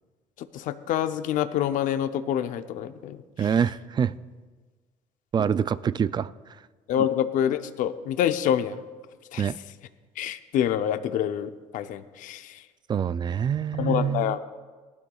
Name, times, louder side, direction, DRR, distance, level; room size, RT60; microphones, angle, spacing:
voice 1, 0.5-3.5 6.9-8.8 9.3-9.5 10.2-12.6 13.8-14.4, left 10 dB, 70° left, 10 dB, 0.7 m, -27 dB
voice 2, 3.4-4.1 5.3-6.3 9.4-9.6 12.9-14.4, right 7 dB, 30° right, 17 dB, 0.3 m, -25 dB
19.0 x 12.0 x 2.4 m, 1.4 s
cardioid pair, 100°, 14 cm